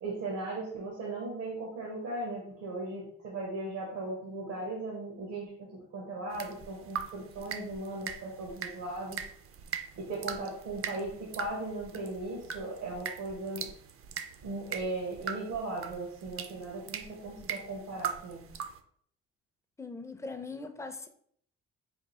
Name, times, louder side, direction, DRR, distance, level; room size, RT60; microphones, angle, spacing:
voice 1, 0.0-9.2 10.0-13.7 14.4-18.4, right 2 dB, 80° right, 1.1 m, -37 dB
sound 1, 6.3-18.8, right 7 dB, 50° right, 0.4 m, -41 dB
voice 2, 19.8-21.1, left 3 dB, 10° left, 0.4 m, -40 dB
3.6 x 2.3 x 4.2 m
cardioid pair, 90°, 30 cm